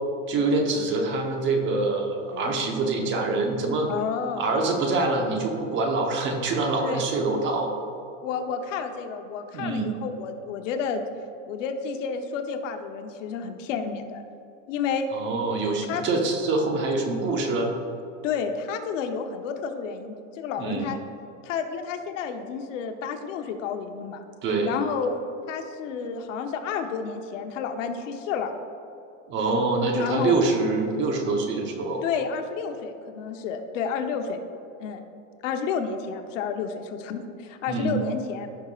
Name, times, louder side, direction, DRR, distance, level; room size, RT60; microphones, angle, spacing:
voice 1, 0.3-3.9 4.4-7.7 9.5-9.9 15.1-17.7 20.6-20.9 24.4-24.7 29.3-32.0 37.7-37.9, right 3 dB, 30° right, 3 dB, 1.1 m, -25 dB
voice 2, 3.9-4.4 6.8-7.1 8.2-11.0 11.5-14.2 14.7-15.1 15.9-16.0 17.2-17.4 18.2-21.0 21.4-24.2 24.7-28.5 30.0-30.4 32.0-34.4 34.8-35.0 35.4-38.5, left 6 dB, 75° left, 6 dB, 1.0 m, -30 dB
16.0 x 5.8 x 2.5 m, 2.7 s
supercardioid pair, 155°, 38 cm